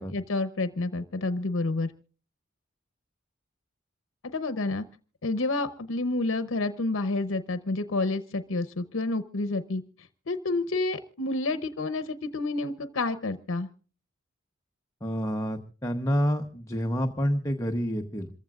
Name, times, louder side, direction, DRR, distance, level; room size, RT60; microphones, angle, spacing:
voice 1, 0.0-1.9 4.3-4.8 5.2-9.8 10.3-13.7, left 2 dB, 75° left, 10 dB, 0.8 m, -29 dB
voice 2, 15.0-18.3, equal, 15° left, 4 dB, 0.9 m, -28 dB
27.0 x 15.0 x 2.4 m, 0.39 s
head